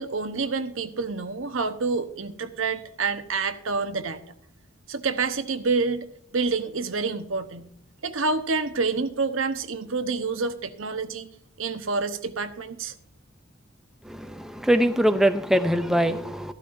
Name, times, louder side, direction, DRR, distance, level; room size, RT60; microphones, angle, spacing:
voice 1, 0.0-4.2 4.9-6.1 6.3-7.7 8.0-11.3 11.6-12.9, right 4 dB, 75° right, 10 dB, 0.9 m, -28 dB
voice 2, 14.0-16.5, right 1 dB, ahead, 8 dB, 0.5 m, -22 dB
13.5 x 12.5 x 2.6 m, 0.69 s
head